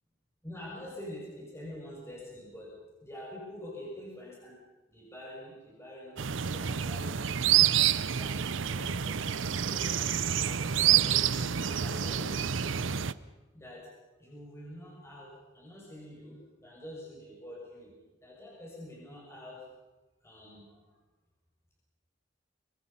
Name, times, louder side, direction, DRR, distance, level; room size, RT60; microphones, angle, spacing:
voice 1, 0.4-2.7 3.0-4.5 4.9-7.2 8.1-13.0 13.5-13.9 14.2-17.9 18.2-19.6 20.2-20.8, left 1 dB, 15° left, -4 dB, 6.4 m, -46 dB
sound 1, 6.2-13.1, right 10 dB, 90° right, 0.7 m, -28 dB
25.5 x 25.0 x 5.7 m, 1.1 s
head